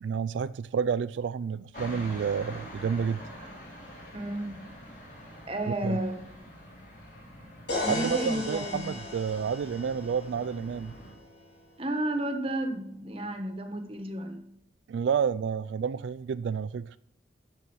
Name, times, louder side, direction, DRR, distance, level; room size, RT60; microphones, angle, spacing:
voice 1, 0.0-3.2 5.8-6.0 7.9-10.9 14.9-17.0, right 6 dB, 85° right, 0.3 m, -30 dB
sound 1, 1.7-11.1, equal, 45° left, 3.7 m, -46 dB
voice 2, 4.1-4.6 5.5-6.2 7.8-8.8 11.8-14.4, right 1 dB, 30° right, 1.3 m, -32 dB
sound 2, 7.7-11.5, left 2 dB, 85° left, 3.2 m, -37 dB
13.5 x 5.6 x 6.2 m
head